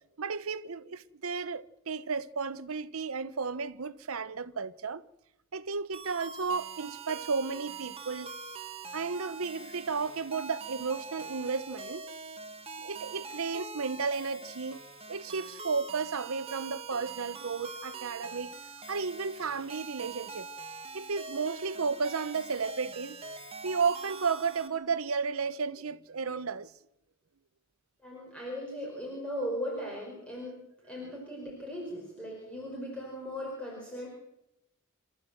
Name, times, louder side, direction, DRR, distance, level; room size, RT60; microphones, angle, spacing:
voice 1, 0.2-5.0 5.5-8.3 8.9-12.0 12.8-14.8 15.1-18.5 18.9-20.5 20.9-23.2 23.6-26.7 31.0-31.2, right 5 dB, 75° right, 0.8 m, -33 dB
sound 1, 5.9-24.7, right 4 dB, 30° right, 1.8 m, -44 dB
voice 2, 28.0-34.1, equal, 5° left, 5.0 m, -38 dB
27.0 x 14.0 x 7.8 m
head